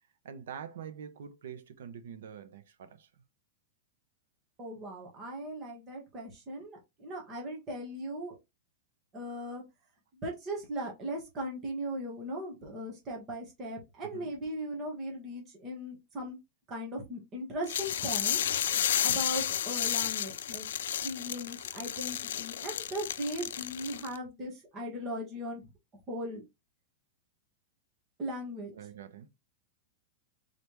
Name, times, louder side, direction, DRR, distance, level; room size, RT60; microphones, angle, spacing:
voice 1, 0.2-3.1 14.1-14.3 28.7-29.3, right 8 dB, 75° right, 0.8 m, -45 dB
voice 2, 4.6-8.3 9.1-9.6 10.1-16.4 16.7-18.4 19.0-20.7 21.0-25.7 26.1-26.4 28.2-28.7, equal, 20° right, 1.4 m, -38 dB
sound 1, 17.7-24.2, left 10 dB, 85° left, 0.3 m, -32 dB
4.0 x 3.4 x 3.1 m
supercardioid pair, 170°, 0 cm